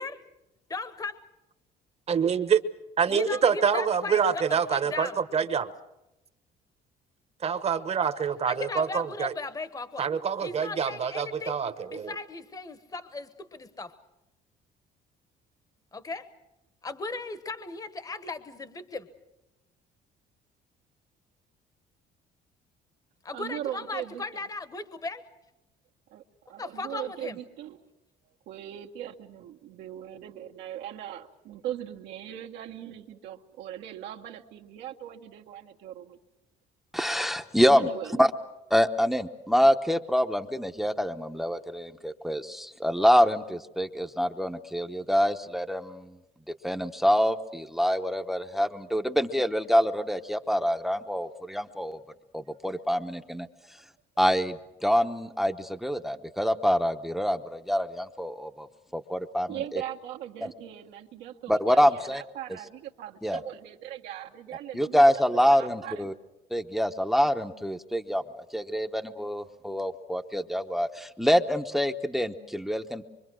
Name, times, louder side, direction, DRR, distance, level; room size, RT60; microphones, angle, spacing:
voice 1, 0.7-1.1 3.1-5.2 8.5-10.1 10.4-11.6 11.9-13.9 15.9-16.3 16.8-19.1 23.2-25.2 26.6-27.4, left 3 dB, 20° left, 12 dB, 1.2 m, -37 dB
voice 2, 2.1-2.6 3.0-5.7 7.4-9.3 10.0-12.1, right 7 dB, 40° right, 11 dB, 1.2 m, -26 dB
voice 3, 23.3-24.2 26.1-26.2 26.5-27.8 28.5-36.2 37.7-38.3 59.5-65.0 65.3-66.0, right 11 dB, 85° right, 1 dB, 1.7 m, -39 dB
voice 4, 36.9-37.9 38.2-38.3 38.7-46.2 46.6-52.0 52.3-53.5 54.2-58.7 58.9-59.8 60.4-60.5 61.5-62.2 63.2-63.4 64.7-66.1 66.5-68.2 68.5-73.0, equal, ahead, 8 dB, 0.9 m, -26 dB
25.0 x 24.5 x 6.3 m, 0.95 s
cardioid pair, 110°, 17 cm